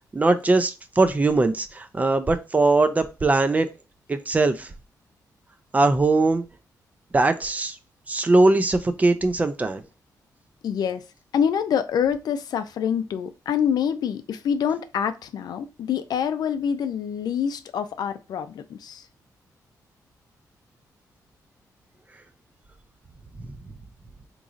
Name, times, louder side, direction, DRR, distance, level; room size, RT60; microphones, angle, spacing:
voice 1, 0.1-3.7 4.1-4.7 5.7-6.4 7.1-7.8 8.1-9.8, right 2 dB, 20° right, 0.4 m, -20 dB
voice 2, 10.6-11.0 11.3-19.1, left 8 dB, 75° left, 0.4 m, -26 dB
3.7 x 3.0 x 2.5 m
wide cardioid pair, 135°, 7 cm